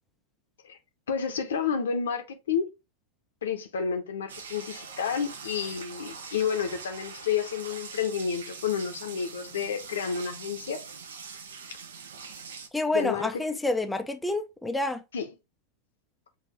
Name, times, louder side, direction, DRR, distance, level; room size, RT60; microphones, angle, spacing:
voice 1, 1.1-2.7 3.4-10.8 12.9-13.3 15.1-15.3, left 7 dB, 65° left, 0.9 m, -30 dB
sound 1, 4.3-12.7, right 5 dB, 65° right, 0.7 m, -43 dB
voice 2, 12.7-15.0, left 2 dB, 5° left, 0.5 m, -28 dB
7.1 x 2.6 x 2.8 m
figure-of-eight pair, 90°, 0 cm